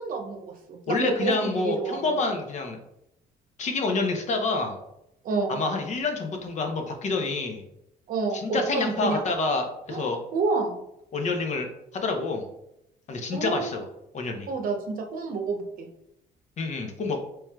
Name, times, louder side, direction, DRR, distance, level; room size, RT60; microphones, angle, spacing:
voice 1, 0.0-2.0 5.2-5.6 8.1-9.2 9.9-10.0 10.3-10.8 13.3-13.6 14.5-15.9, right 4 dB, 55° right, 3 dB, 0.8 m, -29 dB
voice 2, 0.9-2.8 3.6-4.8 5.5-7.6 8.3-10.2 11.1-11.7 12.0-12.5 13.1-13.9 14.1-14.5 16.6-17.2, left 3 dB, 45° left, 4 dB, 0.7 m, -27 dB
4.3 x 3.2 x 2.3 m, 0.81 s
cardioid pair, 110°, 17 cm